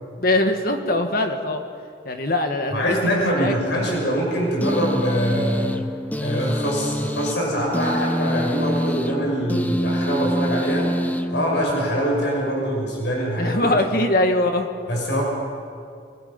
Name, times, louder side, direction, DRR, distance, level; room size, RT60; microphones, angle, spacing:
voice 1, 0.2-1.6 2.1-3.0 3.4-4.1 13.4-14.7, left 1 dB, 50° left, 5 dB, 1.8 m, -22 dB
voice 2, 2.7-5.8 6.2-10.9 11.3-13.8 14.9-15.2, equal, 75° left, -2 dB, 6.2 m, -23 dB
sound 1, 4.6-12.0, equal, 10° left, 0.7 m, -26 dB
28.0 x 20.5 x 5.4 m, 2.4 s
head